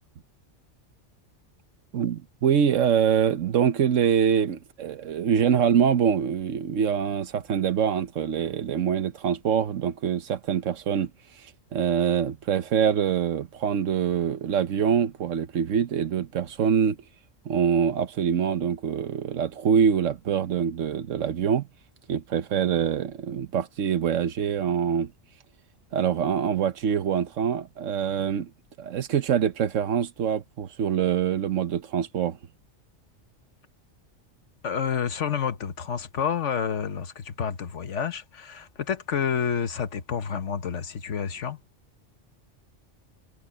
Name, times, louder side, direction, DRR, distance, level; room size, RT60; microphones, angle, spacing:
voice 1, 1.9-11.1 11.4-17.0 17.4-21.7 22.1-25.1 25.9-28.5 28.8-32.4, right 8 dB, 80° right, 1.3 m, -24 dB
voice 2, 34.6-41.6, left 7 dB, 70° left, 1.5 m, -29 dB
omnidirectional pair, 1.3 m